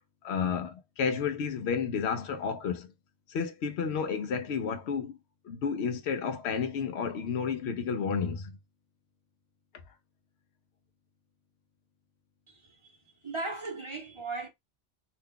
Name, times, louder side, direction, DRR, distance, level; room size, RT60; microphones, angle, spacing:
voice 1, 0.2-2.9 3.3-5.2 5.4-8.5, left 6 dB, 75° left, 0.9 m, -31 dB
voice 2, 12.5-13.0 13.2-14.5, right 3 dB, 30° right, 0.7 m, -37 dB
2.8 x 2.2 x 3.6 m
omnidirectional pair, 1.1 m